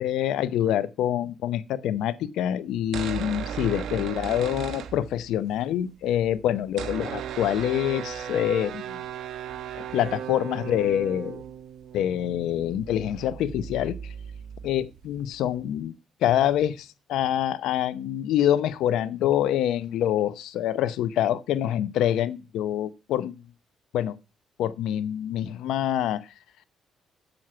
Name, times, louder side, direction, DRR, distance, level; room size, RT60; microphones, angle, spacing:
voice 1, 0.0-9.0 9.9-11.4 11.9-14.1 14.6-15.9 16.2-23.3 23.9-24.2 24.6-26.3, left 11 dB, 85° left, 0.7 m, -26 dB
sound 1, 2.8-5.5 5.8-5.9 6.0-15.5, right 8 dB, 75° right, 1.2 m, -36 dB
8.0 x 7.4 x 5.6 m
cardioid pair, 90°, 0 cm